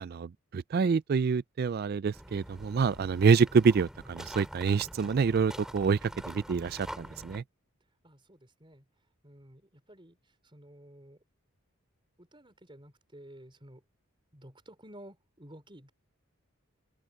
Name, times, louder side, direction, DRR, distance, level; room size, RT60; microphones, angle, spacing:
voice 1, 0.0-7.4, right 5 dB, 45° right, 0.3 m, -27 dB
sound 1, 2.1-7.4, equal, ahead, 5.5 m, -45 dB
voice 2, 8.0-8.8 9.2-10.2 10.5-11.2 12.2-13.8 14.3-15.9, right 1 dB, 25° right, 4.5 m, -52 dB
open air
head